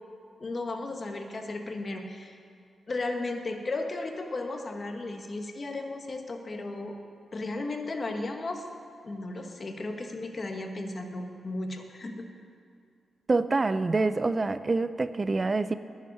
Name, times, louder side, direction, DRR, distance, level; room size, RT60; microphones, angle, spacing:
voice 1, 0.4-2.4 2.9-7.0 7.3-8.6 9.0-12.3, left 2 dB, 45° left, 4 dB, 1.5 m, -35 dB
voice 2, 13.3-15.7, right 3 dB, 35° right, 13 dB, 0.5 m, -26 dB
10.5 x 7.4 x 9.6 m, 2.3 s
supercardioid pair, 50°, 0 cm